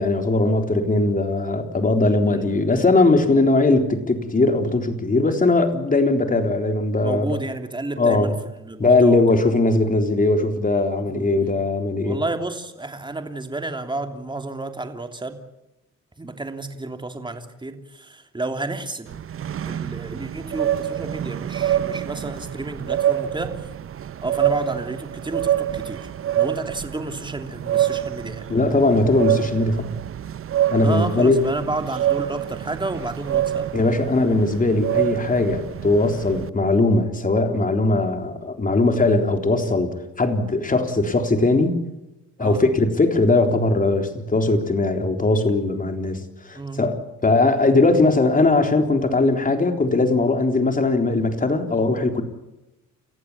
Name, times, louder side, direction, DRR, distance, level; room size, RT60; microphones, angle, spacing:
voice 1, 0.0-7.4 8.0-8.3 8.8-12.2 28.5-29.9 30.7-31.4 33.7-41.8 42.4-52.2, left 2 dB, 25° left, 6 dB, 3.8 m, -20 dB
voice 2, 2.0-2.4 7.0-8.3 8.6-9.2 11.0-11.6 12.0-15.4 16.2-19.1 19.6-23.7 24.2-26.1 26.3-28.5 30.8-33.7 42.4-42.6 46.5-46.8, right 2 dB, 15° right, 6 dB, 3.1 m, -31 dB
sound 1, 19.1-36.5, right 11 dB, 45° right, 0.8 m, -26 dB
29.5 x 15.0 x 8.7 m, 0.95 s
cardioid pair, 90°, 30 cm